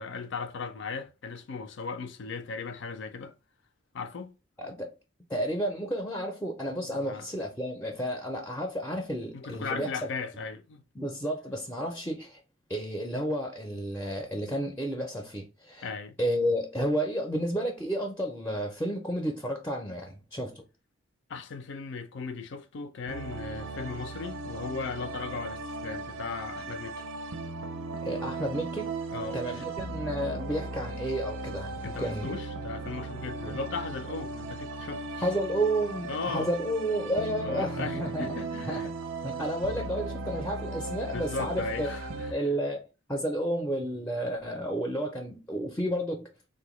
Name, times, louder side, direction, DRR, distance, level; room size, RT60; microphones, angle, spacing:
voice 1, 0.0-3.3 3.9-4.3 6.8-7.3 9.3-10.8 15.8-16.2 21.3-27.1 29.1-29.6 31.8-35.3 36.1-36.5 37.4-38.9 39.7-39.9 41.1-42.3, left 4 dB, 65° left, 0.5 m, -37 dB
voice 2, 4.6-4.9 5.3-9.9 11.0-12.4 12.7-15.9 16.2-20.6 28.0-29.0 29.3-32.3 33.4-33.6 35.2-38.4 38.7-38.9 39.2-41.9 42.3-42.8 43.1-46.3, equal, 10° left, 0.5 m, -31 dB
sound 1, 23.1-42.3, right 3 dB, 90° right, 0.5 m, -37 dB
3.7 x 2.2 x 3.0 m
head